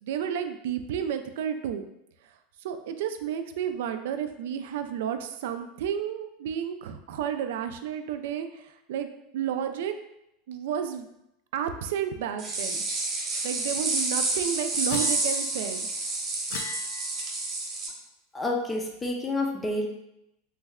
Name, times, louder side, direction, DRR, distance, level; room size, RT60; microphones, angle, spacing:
voice 1, 0.0-1.8 2.6-9.9 10.5-11.1 11.5-12.8 13.4-15.9, right 9 dB, 80° right, 8 dB, 0.3 m, -31 dB
sound 1, 12.4-17.9, right 2 dB, 30° right, 0.9 m, -29 dB
sound 2, 14.9-15.7 16.5-17.5, left 6 dB, 75° left, 0.4 m, -38 dB
voice 2, 18.3-19.9, left 2 dB, 15° left, 1 dB, 0.4 m, -29 dB
3.2 x 2.1 x 3.5 m, 0.82 s
supercardioid pair, 145°, 0 cm